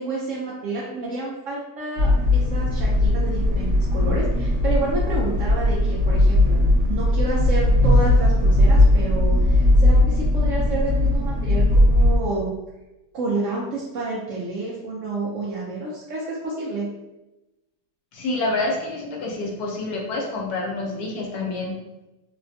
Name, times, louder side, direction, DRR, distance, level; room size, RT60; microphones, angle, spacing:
voice 1, 0.0-12.5 13.1-16.9, right 2 dB, 70° right, -5 dB, 0.7 m, -29 dB
sound 1, 2.0-12.2, left 1 dB, 50° right, 1.1 m, -18 dB
voice 2, 18.1-21.8, left 2 dB, 70° left, -1 dB, 1.1 m, -27 dB
3.2 x 2.2 x 2.5 m, 1.0 s
omnidirectional pair, 1.8 m